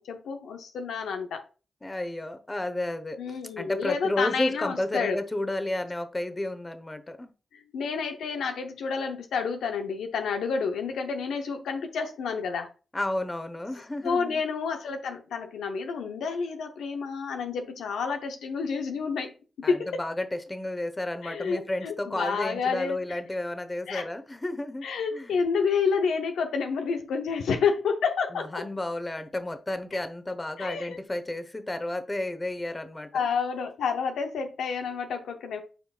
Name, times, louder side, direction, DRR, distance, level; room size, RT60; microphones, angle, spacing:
voice 1, 0.0-1.4 3.2-5.2 7.5-12.7 14.0-20.0 21.2-23.0 23.9-24.1 24.8-28.6 30.6-31.0 33.1-35.6, left 5 dB, 85° left, 0.8 m, -29 dB
voice 2, 1.8-3.2 3.6-7.3 12.9-14.4 19.6-25.4 28.3-33.2, left 1 dB, 25° left, 1.1 m, -32 dB
9.0 x 4.6 x 2.4 m
supercardioid pair, 40°, 0 cm